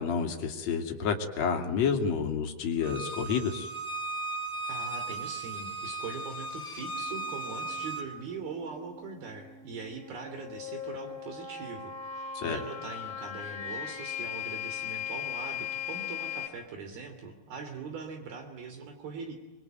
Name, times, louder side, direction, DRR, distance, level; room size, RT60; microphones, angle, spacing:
voice 1, 0.0-3.7 12.4-12.6, left 6 dB, 45° left, 3 dB, 3.8 m, -29 dB
Bowed string instrument, 2.8-8.1, right 3 dB, 15° left, 1.8 m, -36 dB
voice 2, 4.7-19.3, right 4 dB, 65° right, 5 dB, 4.7 m, -41 dB
sound 1, 6.8-16.5, left 8 dB, 70° left, 4.9 m, -39 dB
27.0 x 23.0 x 9.3 m, 1.1 s
omnidirectional pair, 4.7 m